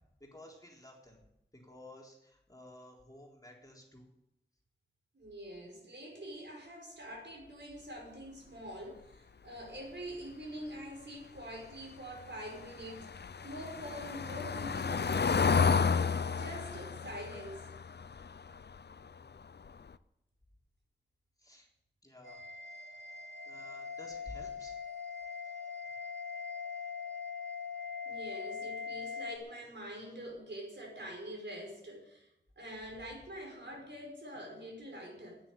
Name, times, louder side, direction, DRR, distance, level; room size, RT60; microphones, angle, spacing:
voice 1, 0.3-1.2 1.5-4.1 21.4-21.7 22.0-22.4 23.5-24.7, left 1 dB, 20° left, -2 dB, 3.9 m, -53 dB
voice 2, 5.1-13.1 13.4-17.6 28.1-32.3 32.6-35.4, equal, 70° right, -1 dB, 5.6 m, -45 dB
Car passing by / Engine, 12.1-19.1 19.4-19.7 19.9-20.0, left 5 dB, 65° left, 0.6 m, -32 dB
sound 1, 22.2-29.4, left 5 dB, 90° right, 2.0 m, -41 dB
10.0 x 9.7 x 9.9 m, 0.84 s
wide cardioid pair, 70°, 19 cm